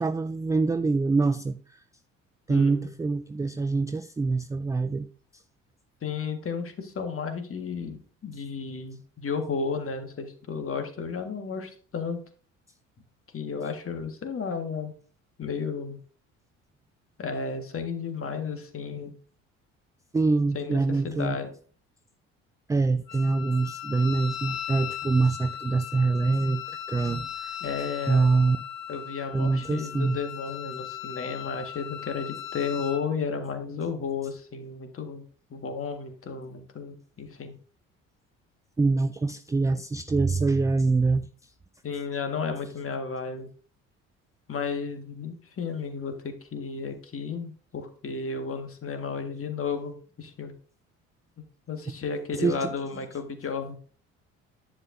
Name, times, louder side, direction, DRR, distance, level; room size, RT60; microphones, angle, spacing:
voice 1, 0.0-1.6 2.5-5.1 20.1-21.4 22.7-27.5 28.1-28.6 29.3-30.2 38.8-41.3 52.3-52.7, right 3 dB, 10° right, 11 dB, 0.4 m, -25 dB
voice 2, 2.5-2.9 6.0-12.2 13.3-14.9 15.4-16.0 17.2-19.1 20.5-21.5 27.6-28.6 28.9-35.2 35.5-37.6 41.8-43.5 44.5-50.5 51.4-53.8, left 5 dB, 35° left, 7 dB, 1.8 m, -33 dB
Wind instrument woodwind instrument, 23.1-33.0, left 10 dB, 55° left, 1.6 m, -38 dB
10.5 x 8.7 x 2.7 m, 0.42 s
figure-of-eight pair, 55°, 39 cm